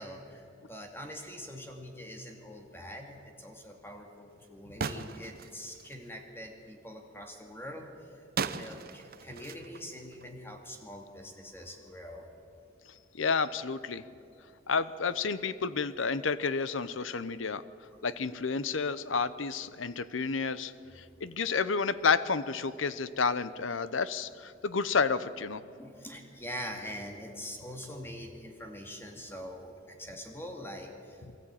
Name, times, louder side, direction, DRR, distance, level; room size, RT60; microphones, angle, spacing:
voice 1, 0.0-8.2 8.5-12.3 25.8-31.4, equal, 10° left, 3 dB, 2.4 m, -44 dB
sound 1, 4.8-6.1 8.4-10.4, right 5 dB, 50° right, 0.8 m, -38 dB
voice 2, 13.1-14.0 14.7-17.6 18.0-25.6, left 5 dB, 75° left, 15 dB, 0.8 m, -30 dB
23.5 x 14.0 x 8.9 m, 2.5 s
head